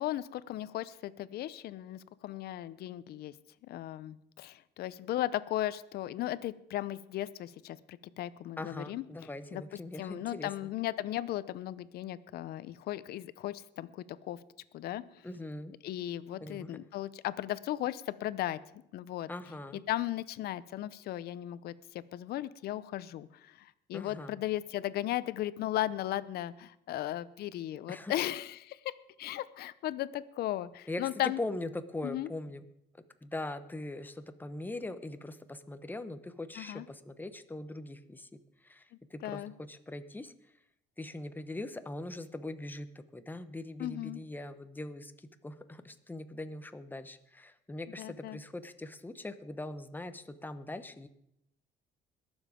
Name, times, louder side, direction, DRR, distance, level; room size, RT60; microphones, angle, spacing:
voice 1, 0.0-3.3 3.7-9.0 9.5-9.6 10.0-14.4 14.7-15.0 15.8-18.6 18.9-19.3 19.9-31.4 32.0-32.3 36.6-36.9 39.2-39.5 43.8-44.2 48.0-48.4, left 14 dB, 70° left, 16 dB, 0.7 m, -36 dB
voice 2, 8.6-10.7 15.2-15.7 16.4-16.8 19.3-19.8 23.9-24.4 27.9-28.1 30.9-31.0 31.4-32.6 33.2-38.8 39.1-40.3 41.0-51.1, left 2 dB, 10° left, 10 dB, 1.0 m, -41 dB
21.5 x 7.2 x 5.1 m, 0.76 s
cardioid pair, 110°, 17 cm